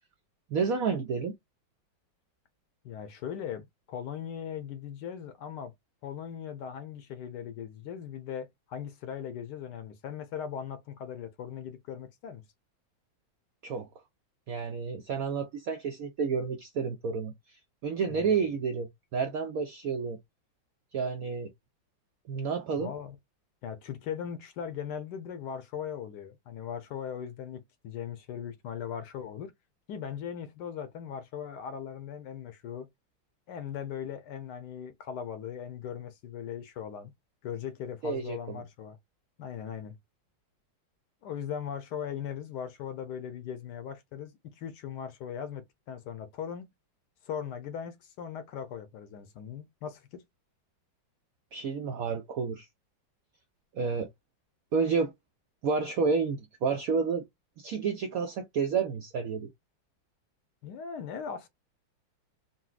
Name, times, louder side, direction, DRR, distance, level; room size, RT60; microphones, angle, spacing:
voice 1, 0.5-1.4 13.6-13.9 14.5-20.2 20.9-21.5 22.3-22.9 38.0-38.6 51.5-52.7 53.7-54.1 54.7-55.1 55.6-57.2 57.6-59.5, right 5 dB, 90° right, 0.7 m, -30 dB
voice 2, 2.8-5.7 6.0-12.4 18.1-18.4 22.8-23.2 23.6-29.5 29.9-32.9 33.5-37.1 37.4-39.0 39.4-39.9 41.2-46.7 47.2-50.2 60.6-61.5, left 8 dB, 70° left, 1.1 m, -39 dB
4.0 x 2.2 x 2.3 m
omnidirectional pair, 2.1 m